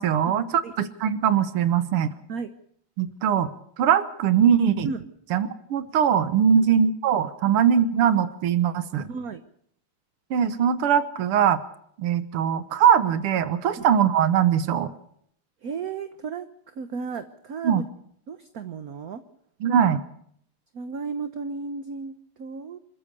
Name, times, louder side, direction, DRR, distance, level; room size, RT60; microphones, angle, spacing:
voice 1, 0.0-2.1 3.0-3.5 3.8-4.9 5.3-9.1 10.3-11.6 12.0-14.9 17.6-17.8 19.6-20.0, right 8 dB, 85° right, 12 dB, 2.0 m, -21 dB
voice 2, 9.1-9.4 13.8-13.9 15.6-16.5 16.7-17.8 18.3-19.2 20.7-22.8, right 5 dB, 50° right, 9 dB, 1.3 m, -34 dB
27.5 x 14.0 x 6.8 m, 0.68 s
omnidirectional pair, 2.4 m